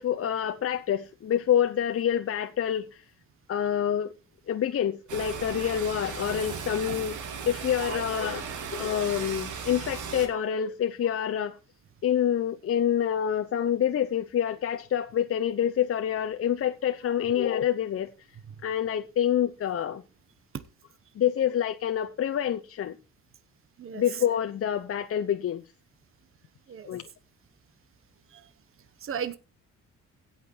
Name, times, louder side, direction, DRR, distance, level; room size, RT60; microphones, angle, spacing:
voice 1, 0.0-3.0 3.5-4.1 4.5-7.2 7.5-8.4 8.7-11.6 12.0-18.1 18.6-20.0 21.2-22.9 23.9-25.6 26.9-27.0, left 9 dB, 50° left, 0.8 m, -27 dB
sound 1, 5.1-10.3, right 6 dB, 75° right, 2.5 m, -36 dB
voice 2, 29.0-29.4, right 8 dB, 45° right, 1.1 m, -35 dB
16.5 x 5.9 x 4.5 m
cardioid pair, 90°, 30 cm